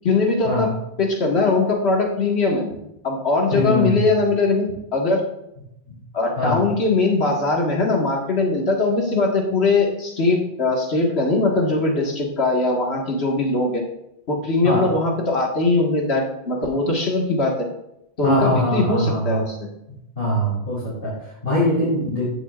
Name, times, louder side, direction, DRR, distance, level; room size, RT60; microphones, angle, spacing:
voice 1, 0.0-0.7 1.0-2.7 3.0-5.2 6.1-13.8 14.3-17.7 18.2-19.7, left 3 dB, 90° left, -1 dB, 2.1 m, -21 dB
voice 2, 3.5-4.1 5.9-6.0 6.4-6.6 14.6-14.9 18.2-19.4 20.2-22.2, left 1 dB, 65° left, -10 dB, 4.0 m, -22 dB
14.0 x 7.8 x 2.5 m, 0.83 s
omnidirectional pair, 1.0 m